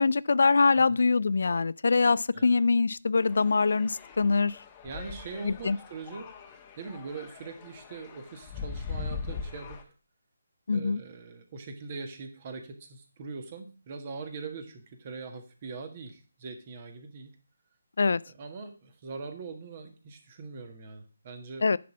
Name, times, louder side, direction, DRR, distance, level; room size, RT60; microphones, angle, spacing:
voice 1, 0.0-4.5 5.4-5.8 10.7-11.0 18.0-18.2 21.6-21.8, left 4 dB, 65° left, 0.3 m, -24 dB
sound 1, 3.1-9.8, left 5 dB, 25° left, 1.2 m, -41 dB
voice 2, 4.8-6.3 6.8-9.8 10.7-17.3 18.3-21.7, right 4 dB, 35° right, 1.6 m, -42 dB
10.0 x 4.2 x 6.1 m
figure-of-eight pair, 155°, 0 cm